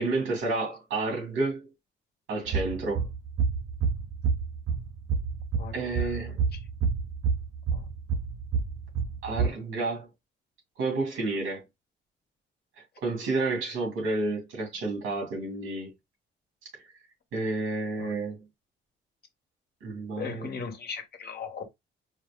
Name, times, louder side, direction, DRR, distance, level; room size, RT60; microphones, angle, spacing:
voice 1, 0.0-1.7 2.3-3.1 5.7-6.4 9.2-10.1 10.8-11.6 13.0-15.9 17.3-18.4 19.8-20.5, right 3 dB, 85° right, 2.5 m, -30 dB
sound 1, 2.5-9.5, right 5 dB, 70° right, 0.7 m, -29 dB
voice 2, 5.6-6.1 6.5-6.6 7.7-7.9 18.0-18.1 20.1-21.6, left 5 dB, 55° left, 1.2 m, -38 dB
4.7 x 2.0 x 3.6 m
cardioid pair, 90°, 20 cm